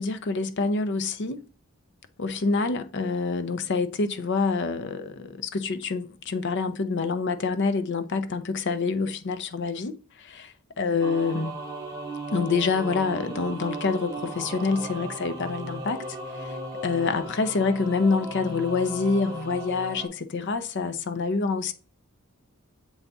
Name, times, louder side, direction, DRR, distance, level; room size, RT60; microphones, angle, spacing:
voice 1, 0.0-1.4 2.2-11.6 12.3-16.0 16.3-16.6 16.8-21.7, left 4 dB, 55° left, 0.5 m, -27 dB
sound 1, 11.0-20.1, right 2 dB, 15° right, 1.1 m, -36 dB
7.0 x 3.9 x 3.4 m
head